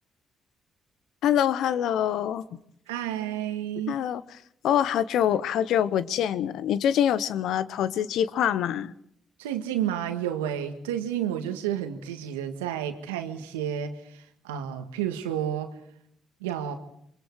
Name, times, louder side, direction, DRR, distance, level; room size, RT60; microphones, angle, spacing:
voice 1, 1.2-2.4 3.9-4.2 4.6-8.9, left 10 dB, 70° left, 16 dB, 0.9 m, -25 dB
voice 2, 2.9-4.0 9.4-15.7 16.4-16.8, right 10 dB, 90° right, 7 dB, 1.7 m, -31 dB
28.5 x 23.5 x 4.8 m, 0.69 s
hypercardioid pair, 45°, 0 cm